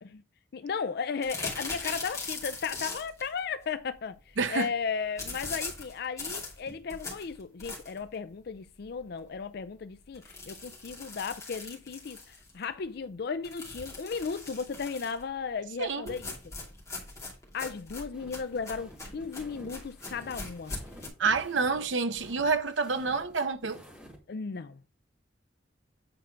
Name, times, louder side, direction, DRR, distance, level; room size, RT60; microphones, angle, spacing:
voice 1, 0.5-16.3 17.5-20.7 24.3-24.8, left 5 dB, 55° left, 0.4 m, -35 dB
sound 1, 1.2-3.3 5.2-8.1 8.6-8.7 9.0-9.1 9.4-9.5 10.1-12.6 13.4-15.2 16.1-21.1, left 3 dB, 15° left, 2.6 m, -40 dB
voice 2, 4.4-4.7 15.8-16.2 21.2-23.8, right 4 dB, 85° right, 0.8 m, -28 dB
sound 2, 18.1-24.2, equal, 5° right, 2.4 m, -51 dB
8.9 x 4.5 x 5.1 m
head